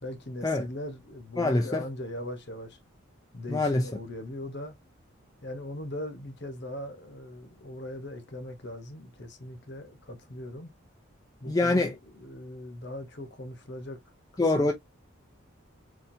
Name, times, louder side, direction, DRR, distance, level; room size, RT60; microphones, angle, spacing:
voice 1, 0.0-2.8 3.3-4.8 5.4-10.7 11.4-14.0 14.4-14.7, left 1 dB, 50° left, 1.0 m, -40 dB
voice 2, 1.4-1.9 3.5-3.9 11.5-11.9 14.4-14.7, left 2 dB, 15° left, 0.4 m, -24 dB
4.2 x 2.7 x 2.6 m
head